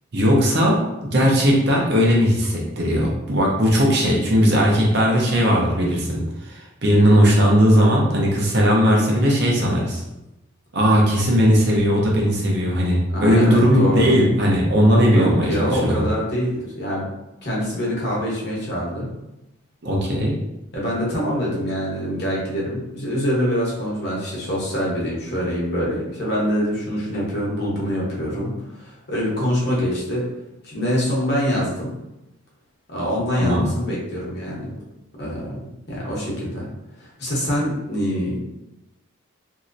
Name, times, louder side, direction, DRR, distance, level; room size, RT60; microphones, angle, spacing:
voice 1, 0.1-10.0 10.7-16.0 19.8-20.3 33.4-33.7, equal, 50° right, -2 dB, 0.7 m, -18 dB
voice 2, 13.1-14.2 15.1-17.1 17.4-19.1 20.7-30.3 30.6-31.9 32.9-34.7 35.2-35.6 35.9-36.7 37.0-38.4, equal, 50° left, -5 dB, 1.0 m, -25 dB
3.0 x 2.8 x 2.6 m, 0.93 s
head